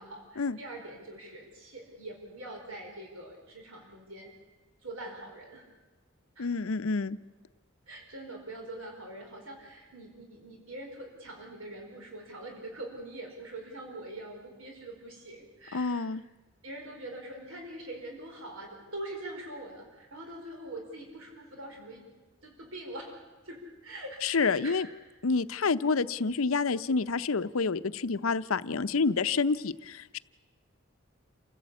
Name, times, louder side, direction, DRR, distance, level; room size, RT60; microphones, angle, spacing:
voice 1, 0.0-4.3 4.8-5.6 6.3-6.5 7.9-16.0 16.6-22.1 22.4-23.1 23.4-24.8, right 1 dB, 80° right, 2 dB, 4.8 m, -43 dB
voice 2, 6.4-7.2 15.7-16.2 24.2-24.9 25.2-30.2, left 4 dB, 80° left, 14 dB, 0.7 m, -28 dB
28.5 x 16.0 x 8.4 m, 1.2 s
head